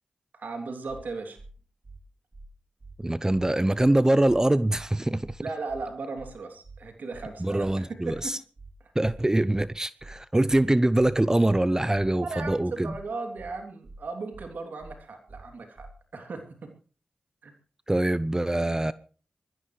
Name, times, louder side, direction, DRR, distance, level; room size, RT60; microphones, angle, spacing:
voice 1, 0.3-1.4 5.4-8.2 8.8-8.9 12.1-15.9 16.1-16.7 17.4-17.5 18.5-18.7, right 3 dB, 80° right, 3.0 m, -37 dB
sound 1, 0.9-1.0 1.4-1.5 1.8-2.0 2.3-2.5 2.8-3.0 3.3-3.4 3.8-3.9 4.2-4.4 4.7-4.9 5.2-5.4 5.7-5.8 6.2-6.3 6.6-6.8 7.1-7.3 7.6-7.8 8.1-8.2 8.6-8.7 9.0-9.2 9.5-9.7 10.0-10.2 10.5-10.6 11.0-11.1 11.4-11.6 11.9-12.1 12.4-12.6 12.9-13.0 13.4-13.5 13.8-14.0 14.3-14.5 14.8-15.0 15.3-15.4 15.8-15.9, right 3 dB, 50° right, 3.2 m, -46 dB
voice 2, 3.0-5.4 7.4-8.4 9.0-12.9 17.9-18.9, right 1 dB, 20° right, 0.7 m, -24 dB
21.5 x 15.0 x 3.3 m
cardioid pair, 40°, 3 cm